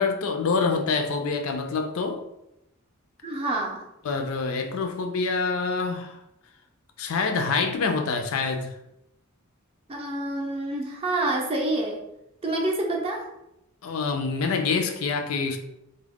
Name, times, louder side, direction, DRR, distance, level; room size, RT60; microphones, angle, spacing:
voice 1, 0.0-2.2 4.0-6.2 7.0-8.8 13.8-15.6, left 4 dB, 70° left, 5 dB, 0.4 m, -26 dB
voice 2, 3.2-3.8 9.9-12.0 12.4-13.3, right 2 dB, 25° right, 0 dB, 0.5 m, -27 dB
2.3 x 2.0 x 3.4 m, 0.85 s
head